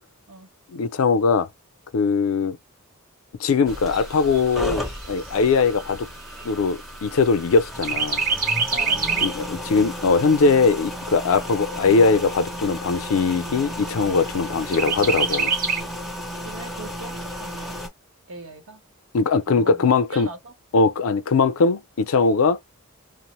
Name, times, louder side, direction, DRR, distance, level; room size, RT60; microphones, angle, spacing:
voice 1, 0.7-1.5 1.9-2.6 3.4-6.1 6.4-8.2 9.2-15.5 19.1-20.3 20.7-22.6, left 4 dB, 70° left, 0.4 m, -20 dB
sound 1, 3.7-17.9, equal, ahead, 0.5 m, -34 dB
Chirp tweet, 3.7-7.4 7.8-9.5 9.9-10.0 10.4-11.4 12.0-12.1 12.4-12.5 12.9-13.5 14.7-15.8, right 4 dB, 45° right, 0.7 m, -26 dB
voice 2, 8.7-9.3 9.7-10.0 16.4-17.8 18.3-18.8 19.3-20.5, right 3 dB, 75° right, 0.9 m, -40 dB
2.9 x 2.0 x 3.0 m
head